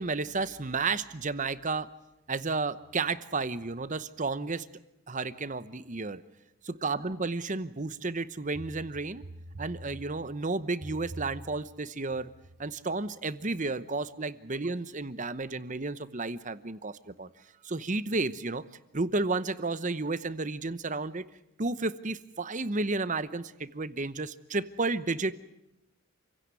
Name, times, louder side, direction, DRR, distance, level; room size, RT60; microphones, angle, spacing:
voice 1, 0.0-1.9 2.3-4.7 5.1-6.2 6.6-9.3 9.5-12.3 12.6-17.3 17.6-18.6 18.9-21.2 21.6-25.3, right 3 dB, 35° right, 14 dB, 0.9 m, -32 dB
28.0 x 16.5 x 9.7 m, 0.88 s
head